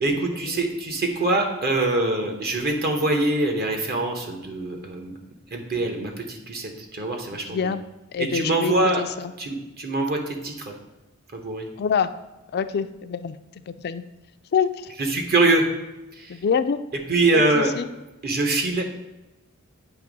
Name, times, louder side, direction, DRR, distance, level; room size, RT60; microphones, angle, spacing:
voice 1, 0.0-5.2 5.5-7.7 8.2-9.0 9.4-10.6 11.3-11.6 15.1-15.6 16.2-16.4 17.1-17.7 18.2-18.8, right 2 dB, 45° right, 3 dB, 1.0 m, -24 dB
voice 2, 7.4-7.8 8.1-9.3 11.8-12.1 12.5-13.4 13.7-14.0 14.5-14.9 16.3-16.8 17.3-17.9, left 6 dB, 50° left, 12 dB, 0.4 m, -26 dB
8.0 x 3.0 x 5.1 m, 1.0 s
head